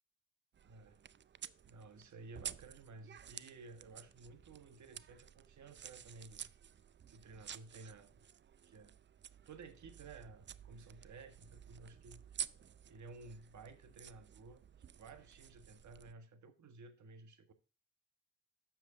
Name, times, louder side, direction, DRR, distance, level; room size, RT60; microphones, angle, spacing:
sound 1, 0.5-16.1, right 8 dB, 35° right, 0.4 m, -52 dB
voice 1, 0.6-1.0 1.6-6.5 7.1-8.2 8.7-9.0 9.4-12.4 12.9-17.5, right 3 dB, 60° right, 1.4 m, -55 dB
7.6 x 6.7 x 3.7 m
supercardioid pair, 55°, 33 cm